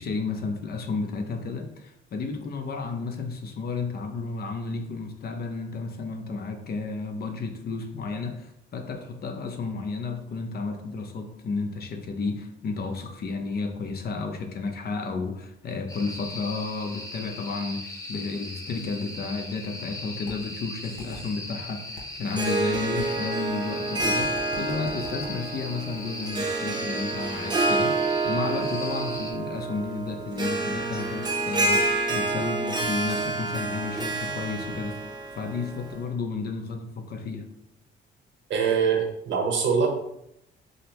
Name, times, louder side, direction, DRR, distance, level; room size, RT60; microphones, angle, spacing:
voice 1, 0.0-35.0 35.4-37.5, left 4 dB, 50° left, 4 dB, 0.6 m, -32 dB
sound 1, 15.9-29.3, left 2 dB, 15° left, 0.7 m, -39 dB
sound 2, 20.3-20.4 21.0-21.2 22.0-22.1 22.7-23.1 24.0-25.3, left 4 dB, 90° left, 0.8 m, -41 dB
Harp, 22.3-36.0, right 2 dB, 20° right, 0.7 m, -28 dB
voice 2, 38.5-39.9, right 6 dB, 70° right, 2 dB, 0.9 m, -23 dB
5.0 x 2.1 x 2.9 m, 0.78 s
cardioid pair, 90°, 20 cm